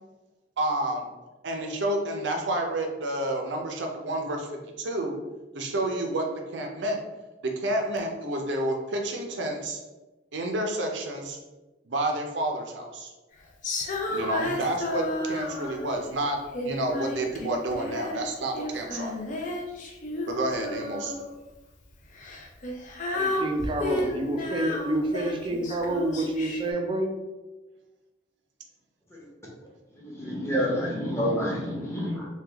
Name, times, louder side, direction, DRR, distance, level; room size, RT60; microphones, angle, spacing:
voice 1, 0.6-1.1 1.4-5.2 5.5-7.0 7.4-9.8 10.3-11.4 11.9-13.1 14.1-19.1 20.3-21.1, right 1 dB, 70° right, 2 dB, 0.6 m, -29 dB
Female singing, 13.6-16.0 16.5-18.3 18.5-21.4 22.1-26.7, left 1 dB, 45° left, 0.4 m, -32 dB
voice 2, 23.1-27.1, right 1 dB, 25° right, 3 dB, 0.4 m, -28 dB
voice 3, 30.0-32.3, equal, 15° left, -4 dB, 0.8 m, -28 dB
3.3 x 2.3 x 3.4 m, 1.1 s
head